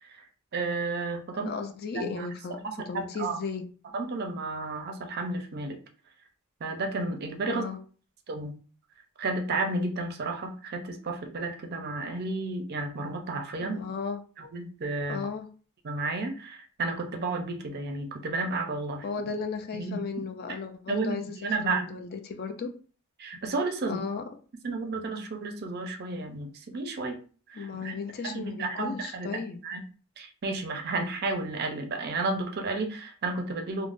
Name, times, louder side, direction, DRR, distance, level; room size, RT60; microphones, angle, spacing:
voice 1, 0.5-1.6 1.9-3.4 3.9-5.8 6.6-7.7 8.3-8.5 9.2-13.8 14.4-15.2 15.8-19.3 19.7-20.2 20.9-22.0 23.2-24.0 24.6-27.2 27.5-28.0 28.2-29.8 30.2-33.9, right 3 dB, 45° right, 4 dB, 0.5 m, -32 dB
voice 2, 1.3-2.6 2.9-3.6 7.5-7.8 13.7-14.2 15.1-15.5 19.0-21.3 21.6-22.7 23.9-24.2 27.5-29.6, left 5 dB, 45° left, 6 dB, 0.3 m, -35 dB
3.4 x 2.0 x 2.5 m, 0.39 s
head